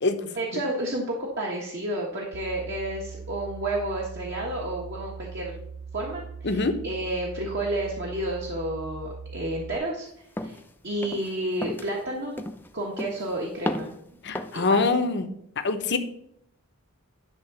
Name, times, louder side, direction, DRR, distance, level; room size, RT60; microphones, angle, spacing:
voice 1, 0.3-5.5 5.9-10.1 10.4-10.6 10.8-12.4 12.7-13.9 14.5-14.9, right 1 dB, 50° right, -2 dB, 1.4 m, -31 dB
sound 1, 2.3-9.8, right 5 dB, 80° right, 0.6 m, -40 dB
voice 2, 6.4-6.8 14.2-15.3 15.6-16.0, left 3 dB, 50° left, 8 dB, 0.8 m, -24 dB
sound 2, 10.4-10.6 11.0-11.3 11.6-11.9 12.4-12.7 13.0-13.3 13.7-14.0 14.3-14.7, left 1 dB, 10° left, 0.5 m, -33 dB
10.5 x 3.8 x 6.9 m, 0.74 s
head